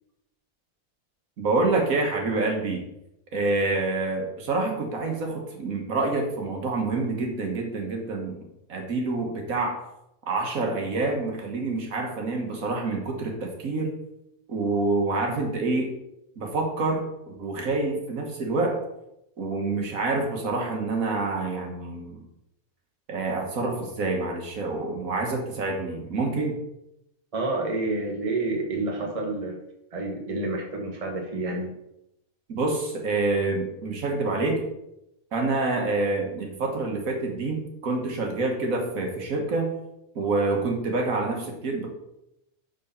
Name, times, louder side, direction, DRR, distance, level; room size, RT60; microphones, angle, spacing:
voice 1, 1.4-2.8 3.3-8.4 8.7-9.8 10.3-14.0 14.5-16.0 16.4-18.8 19.4-22.2 23.1-26.6 32.5-34.6 35.3-39.7 40.1-41.9, right 3 dB, 75° right, 1 dB, 1.6 m, -27 dB
voice 2, 27.3-29.6 29.9-31.7, right 2 dB, 25° right, 0 dB, 1.2 m, -29 dB
6.3 x 4.0 x 5.5 m, 0.84 s
omnidirectional pair, 1.5 m